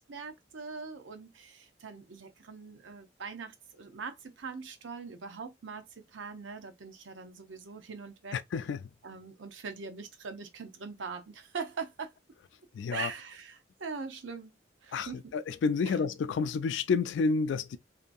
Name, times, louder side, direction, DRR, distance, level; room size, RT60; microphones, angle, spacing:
voice 1, 0.1-8.4 9.0-12.1 12.9-14.6 14.8-15.3 15.9-16.0, right 5 dB, 85° right, 0.6 m, -42 dB
voice 2, 8.3-8.8 12.7-13.1 14.9-17.8, left 5 dB, 75° left, 0.3 m, -30 dB
2.7 x 2.5 x 2.2 m
head